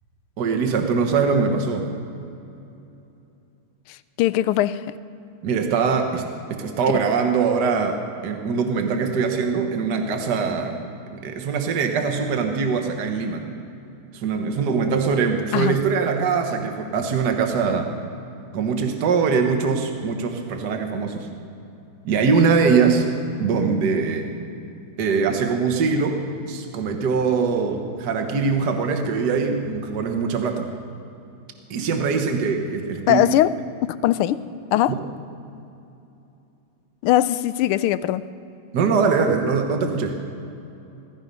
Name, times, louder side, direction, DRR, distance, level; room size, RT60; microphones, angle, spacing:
voice 1, 0.4-1.9 5.4-6.2 6.5-10.8 11.1-13.5 14.1-17.9 18.5-21.3 22.1-23.0 23.4-24.3 25.0-26.2 26.5-30.7 31.7-33.2 34.9-35.0 38.7-40.2, right 5 dB, 55° right, 4 dB, 1.7 m, -22 dB
voice 2, 4.2-4.8 15.5-15.7 33.1-33.5 33.8-34.4 34.7-34.9 37.0-38.2, left 13 dB, 85° left, 15 dB, 1.5 m, -20 dB
16.5 x 14.5 x 5.4 m, 2.8 s
omnidirectional pair, 2.4 m